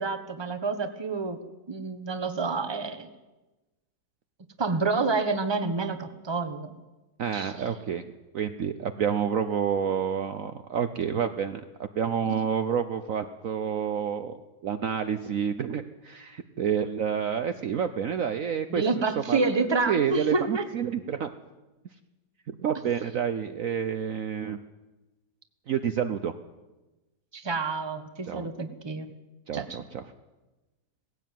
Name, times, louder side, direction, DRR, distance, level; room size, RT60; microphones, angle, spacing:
voice 1, 0.0-1.4 1.7-3.1 4.6-6.7 7.3-7.7 12.2-12.4 18.7-20.6 27.3-29.1 29.5-29.8, right 3 dB, 15° right, 9 dB, 1.2 m, -28 dB
voice 2, 7.2-18.8 19.3-21.3 22.5-24.6 25.7-26.3 28.3-28.5 29.5-30.0, right 8 dB, 60° right, 9 dB, 1.1 m, -29 dB
18.5 x 15.5 x 9.3 m, 1.1 s
omnidirectional pair, 1.8 m